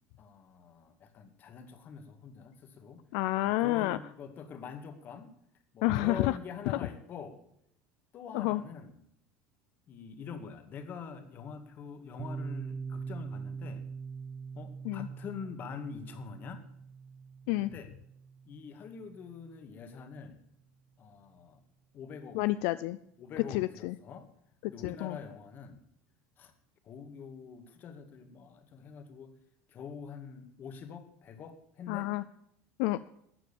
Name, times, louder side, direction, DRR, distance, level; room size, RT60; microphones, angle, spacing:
voice 1, 0.2-3.0 3.4-5.3 5.7-7.4 8.1-9.1 9.9-13.9 14.5-16.6 17.6-17.9 18.5-20.4 21.0-21.6 21.9-22.5 23.2-24.3 24.7-25.8 26.4-26.5 26.8-29.3 29.7-32.2, left 6 dB, 35° left, 8 dB, 2.1 m, -45 dB
voice 2, 3.1-4.0 5.8-6.3 6.7-6.8 8.3-8.6 14.8-15.1 17.5-17.7 22.3-23.0 23.5-23.9 24.6-25.2 31.9-32.2 32.8-33.0, left 17 dB, 70° left, 14 dB, 0.5 m, -29 dB
Piano, 12.2-19.6, right 5 dB, 15° right, 0.5 m, -43 dB
14.0 x 9.1 x 7.1 m, 0.72 s
cardioid pair, 155°, 6 cm